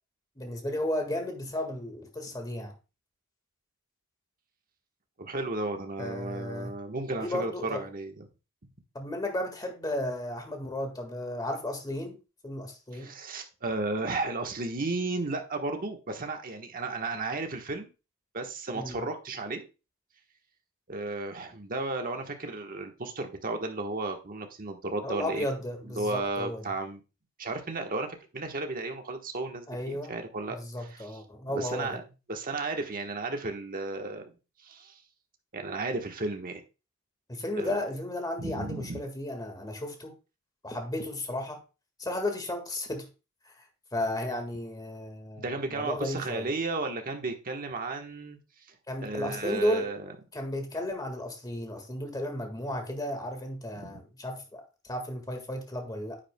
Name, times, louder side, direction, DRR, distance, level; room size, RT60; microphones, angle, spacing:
voice 1, 0.3-2.7 6.0-6.7 7.2-7.8 8.9-12.2 12.4-13.1 18.7-19.0 25.0-26.6 29.7-30.1 30.5-32.0 37.3-40.1 40.6-41.6 42.0-43.1 43.4-43.6 43.9-46.5 48.9-49.9 50.3-56.2, left 1 dB, 15° left, 1.7 m, -34 dB
voice 2, 5.2-8.3 12.9-17.9 18.3-19.6 20.9-25.5 25.8-27.0 27.4-31.2 31.5-32.0 32.3-34.4 34.6-35.0 35.5-36.6 37.6-37.8 38.4-39.0 45.4-48.4 49.0-50.0 53.8-54.0, right 3 dB, 40° right, 1.2 m, -34 dB
9.8 x 8.3 x 2.2 m
head